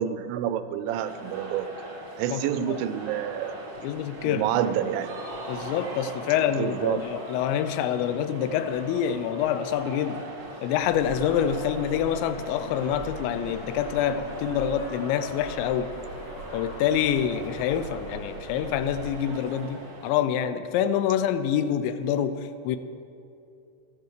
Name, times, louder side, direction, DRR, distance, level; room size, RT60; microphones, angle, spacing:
voice 1, 0.0-1.7 2.2-3.5 4.2-5.1 6.6-7.0, right 10 dB, 85° right, 12 dB, 2.8 m, -28 dB
sound 1, 0.9-20.1, right 1 dB, 50° right, 1.3 m, -41 dB
voice 2, 2.3-2.8 3.8-4.5 5.5-10.3 10.6-16.0 16.5-22.8, left 9 dB, 80° left, 12 dB, 2.8 m, -26 dB
sound 2, 10.8-19.1, right 2 dB, 60° left, 4.2 m, -42 dB
13.5 x 11.0 x 6.6 m, 2.7 s
omnidirectional pair, 5.4 m